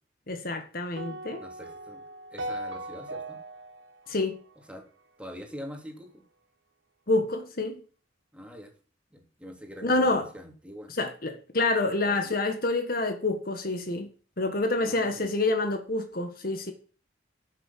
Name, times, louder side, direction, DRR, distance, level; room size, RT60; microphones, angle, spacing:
voice 1, 0.3-1.4 4.1-4.4 7.1-7.8 9.8-10.2 11.0-14.1 14.4-16.7, left 2 dB, 50° left, 1.6 m, -27 dB
sound 1, 1.0-5.3, right 1 dB, 80° right, 1.5 m, -39 dB
voice 2, 1.4-2.0 2.3-3.4 4.6-4.8 5.2-6.2 8.3-8.7 9.1-10.9 12.0-12.2 14.8-15.3, equal, 5° right, 3.1 m, -44 dB
11.5 x 7.3 x 7.5 m
head